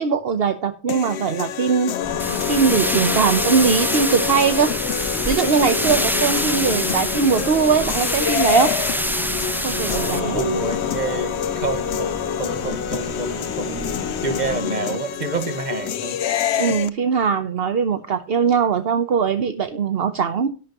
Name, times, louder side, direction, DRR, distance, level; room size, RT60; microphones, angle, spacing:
voice 1, 0.0-2.0 2.5-4.7 5.3-8.7 9.6-10.4 16.6-20.5, right 6 dB, 65° right, 1.1 m, -20 dB
sound 1, 0.9-16.9, left 10 dB, 80° left, 0.9 m, -27 dB
sound 2, 2.0-14.6, left 1 dB, 30° left, 2.2 m, -33 dB
sound 3, 2.2-10.2, equal, ahead, 0.9 m, -26 dB
voice 2, 9.9-16.2, right 3 dB, 40° right, 1.7 m, -28 dB
12.5 x 11.5 x 3.0 m
omnidirectional pair, 1.1 m